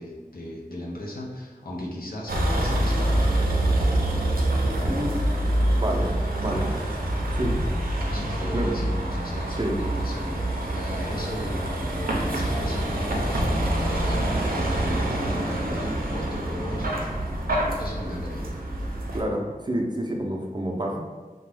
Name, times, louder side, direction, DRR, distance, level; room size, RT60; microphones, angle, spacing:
voice 1, 0.0-3.2 8.1-10.4 10.7-16.9 17.8-18.4, left 1 dB, 85° left, -4 dB, 0.5 m, -36 dB
Vehicle, 2.3-19.2, right 1 dB, 90° right, 0.4 m, -26 dB
voice 2, 4.9-5.2 5.8-6.7 7.3-7.6 8.5-8.7 9.6-9.7 19.1-21.0, right 1 dB, 30° right, 0 dB, 0.4 m, -28 dB
2.4 x 2.1 x 3.3 m, 1.4 s
wide cardioid pair, 40°, 15 cm